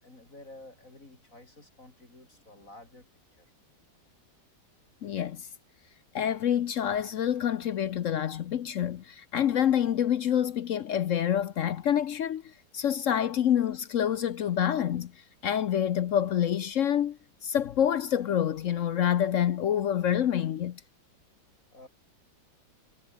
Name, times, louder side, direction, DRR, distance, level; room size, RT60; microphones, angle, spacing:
voice 1, 0.0-3.5 21.7-21.9, left 2 dB, 45° left, 5.5 m, -51 dB
voice 2, 5.0-5.5 6.1-20.8, left 10 dB, 65° left, 0.8 m, -27 dB
omnidirectional pair, 2.0 m